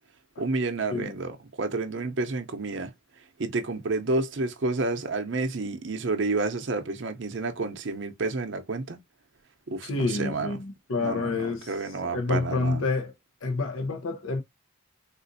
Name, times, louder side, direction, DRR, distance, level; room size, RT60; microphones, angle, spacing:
voice 1, 0.4-2.9 3.4-9.0 9.7-10.6 11.0-12.9, right 3 dB, 60° right, 0.6 m, -30 dB
voice 2, 9.8-10.6 10.9-11.7 12.1-13.1 13.4-14.4, left 3 dB, 75° left, 0.6 m, -28 dB
3.7 x 2.5 x 2.6 m
head